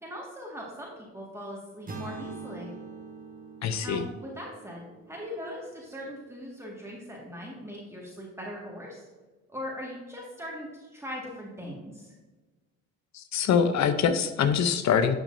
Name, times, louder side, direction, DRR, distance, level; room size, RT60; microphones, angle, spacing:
voice 1, 0.0-2.7 3.8-9.1 9.5-12.1, equal, 10° right, -4 dB, 1.9 m, -40 dB
sound 1, 1.9-5.9, right 4 dB, 30° right, 1.4 m, -43 dB
voice 2, 3.6-4.0 13.1-15.2, left 7 dB, 65° left, 10 dB, 0.7 m, -24 dB
11.0 x 6.1 x 2.7 m, 1.3 s
cardioid pair, 90°, 30 cm